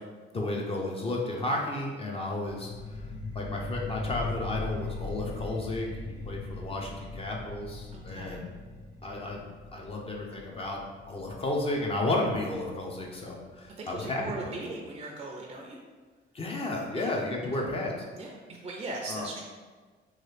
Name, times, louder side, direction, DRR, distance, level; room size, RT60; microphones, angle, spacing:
voice 1, 0.3-3.0 3.3-8.5 9.0-9.4 9.7-10.8 11.1-14.8 16.3-18.0 19.1-19.3, left 2 dB, 30° left, -1 dB, 0.6 m, -33 dB
sound 1, 2.4-13.5, left 2 dB, 80° left, 0.9 m, -40 dB
voice 2, 7.9-8.4 13.8-15.8 16.9-17.2 18.1-18.3 18.6-19.4, right 2 dB, 30° right, 0 dB, 0.4 m, -39 dB
3.1 x 2.3 x 3.2 m, 1.4 s
cardioid pair, 90°, 20 cm